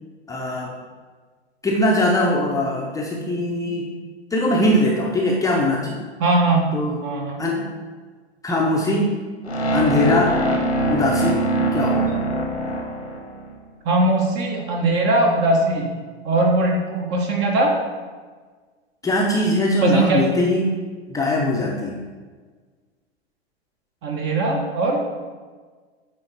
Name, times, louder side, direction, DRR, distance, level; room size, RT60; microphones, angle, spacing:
voice 1, 0.3-0.7 1.6-3.9 4.3-6.0 6.7-7.0 7.4-7.6 8.4-9.1 9.7-10.4 10.9-11.4 11.7-12.1 19.0-20.6 21.1-22.0, left 1 dB, 10° left, -3 dB, 0.9 m, -21 dB
voice 2, 6.2-6.7 7.0-7.4 13.8-15.9 16.2-17.7 19.8-20.3 24.0-25.0, right 2 dB, 35° right, 0 dB, 1.6 m, -20 dB
sound 1, 9.5-13.6, right 2 dB, 90° left, 1.4 m, -22 dB
9.5 x 3.9 x 4.6 m, 1.5 s
figure-of-eight pair, 95°, 32 cm